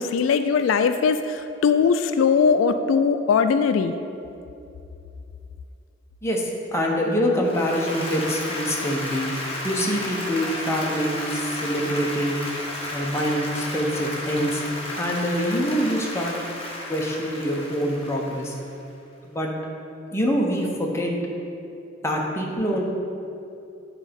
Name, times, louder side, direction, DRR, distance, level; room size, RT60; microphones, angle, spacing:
voice 1, 0.0-3.9, left 6 dB, 85° left, 9 dB, 0.3 m, -20 dB
voice 2, 6.2-9.3 9.6-12.4 12.9-14.6 14.9-16.3 16.9-18.6 19.2-19.5 20.1-21.1 22.0-22.8, equal, 15° left, -1 dB, 0.8 m, -25 dB
Applause, 7.4-18.8, left 1 dB, 30° left, 1.1 m, -33 dB
8.3 x 4.1 x 5.1 m, 2.7 s
head